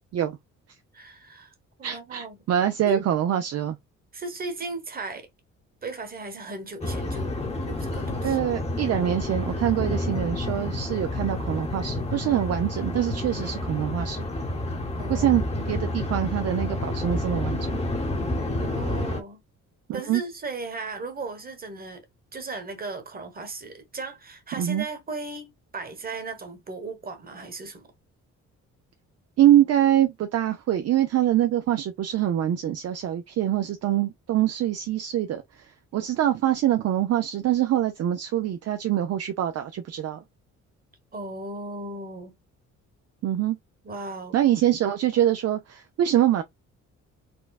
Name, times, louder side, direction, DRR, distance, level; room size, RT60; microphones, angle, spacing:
voice 1, 0.9-2.4 2.8-3.0 4.1-5.3 5.8-7.3 7.7-8.4 15.0-15.3 18.6-19.4 19.9-22.0 22.3-27.9 41.1-42.3 43.8-44.4, right 3 dB, 30° right, 1.2 m, -36 dB
voice 2, 1.8-3.8 8.2-14.3 15.1-17.8 19.9-20.2 24.6-24.9 29.4-35.4 35.9-40.2 43.2-43.6 44.3-46.4, right 11 dB, 55° right, 0.5 m, -24 dB
sound 1, 6.8-19.2, left 1 dB, 20° left, 1.1 m, -29 dB
4.3 x 2.2 x 2.3 m
cardioid pair, 90°, 30 cm